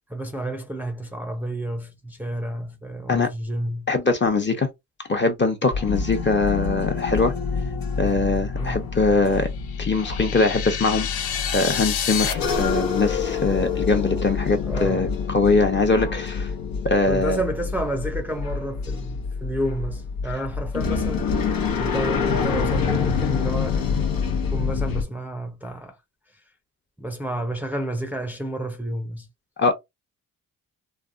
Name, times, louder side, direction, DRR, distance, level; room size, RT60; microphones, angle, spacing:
voice 1, 0.1-3.9 8.6-8.9 14.6-15.1 17.1-24.1 24.5-26.0 26.3-26.4 27.0-29.3, right 1 dB, 5° right, 0.6 m, -30 dB
voice 2, 3.9-4.7 5.1-7.3 8.0-9.5 9.8-16.5 16.8-17.4 29.6-29.7, left 3 dB, 30° left, 0.9 m, -22 dB
sound 1, 5.7-25.0, left 5 dB, 65° left, 0.9 m, -27 dB
sound 2, 9.6-12.3, left 9 dB, 85° left, 0.5 m, -29 dB
3.3 x 2.0 x 2.5 m
cardioid pair, 55°, 37 cm